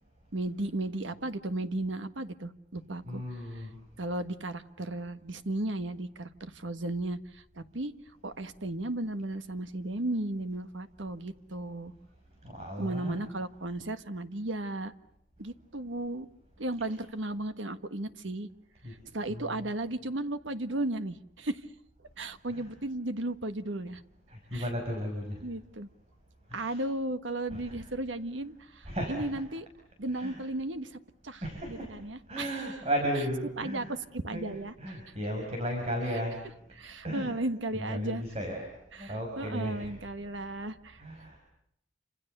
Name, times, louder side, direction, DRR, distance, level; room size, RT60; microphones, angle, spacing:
voice 1, 0.3-3.7 4.0-7.9 8.2-11.9 12.8-14.9 15.4-16.3 16.6-18.5 18.9-21.6 22.2-24.0 24.5-24.7 25.4-25.9 26.5-29.6 30.0-31.0 31.2-31.4 31.7-32.7 33.6-34.7 36.7-38.2 38.9-41.0, right 1 dB, 80° right, 11 dB, 1.5 m, -35 dB
voice 2, 3.1-3.8 12.4-13.3 18.8-18.9 19.3-19.7 22.5-22.6 24.3-25.4 26.5-26.8 27.5-27.8 28.9-29.3 30.1-30.4 31.4-31.9 32.3-33.9 34.3-36.4 37.0-37.3 37.7-38.7 39.0-40.0 41.0-41.4, equal, 35° right, 2 dB, 6.0 m, -35 dB
29.0 x 27.0 x 6.8 m, 0.74 s
head